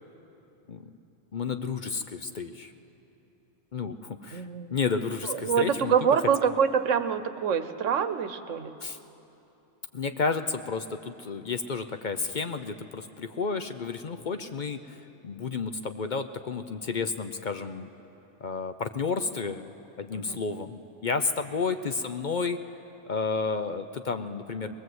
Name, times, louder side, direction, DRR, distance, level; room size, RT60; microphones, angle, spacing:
voice 1, 1.3-2.7 3.7-6.5 8.8-9.0 9.9-15.0 15.2-17.9 18.4-19.7 20.0-22.6 23.1-24.7, left 4 dB, 45° left, 9 dB, 0.7 m, -31 dB
voice 2, 4.3-4.7 5.3-8.7 20.1-20.4, right 7 dB, 85° right, 11 dB, 1.2 m, -26 dB
21.5 x 21.0 x 7.9 m, 3.0 s
omnidirectional pair, 1.3 m